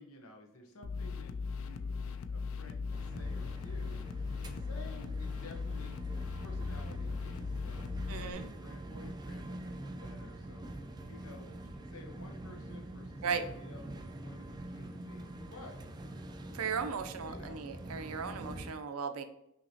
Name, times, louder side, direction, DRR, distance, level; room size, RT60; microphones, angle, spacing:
voice 1, 0.0-4.0 4.4-6.0 6.4-10.7 11.0-15.8 17.3-17.7, left 2 dB, 85° left, 2 dB, 0.9 m, -53 dB
sound 1, 0.8-8.3, left 4 dB, 65° left, 0.3 m, -38 dB
sound 2, 2.9-18.7, right 1 dB, 20° right, 0.3 m, -45 dB
voice 2, 8.1-8.5 13.2-13.4 16.5-19.2, right 6 dB, 85° right, 8 dB, 0.5 m, -36 dB
5.5 x 2.9 x 2.8 m, 0.79 s
head